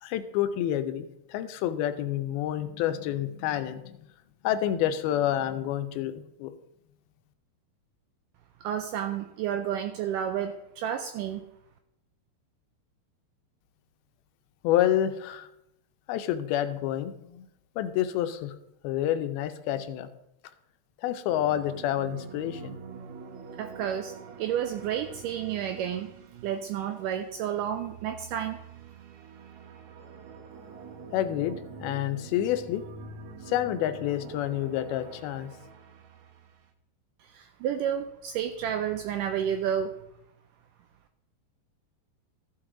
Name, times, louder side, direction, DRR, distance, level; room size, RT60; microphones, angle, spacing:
voice 1, 0.0-4.0 4.4-6.5 14.6-15.5 16.1-17.5 17.8-18.5 18.8-20.1 21.0-22.7 31.1-32.8 33.5-35.5, left 11 dB, 85° left, 10 dB, 2.6 m, -28 dB
voice 2, 8.6-11.5 23.6-26.1 26.4-28.6 37.2-39.9, right 9 dB, 85° right, 8 dB, 1.9 m, -31 dB
sound 1, 21.3-27.1 27.5-36.7, right 5 dB, 70° right, 1.8 m, -46 dB
14.0 x 6.2 x 3.7 m, 0.83 s
omnidirectional pair, 4.3 m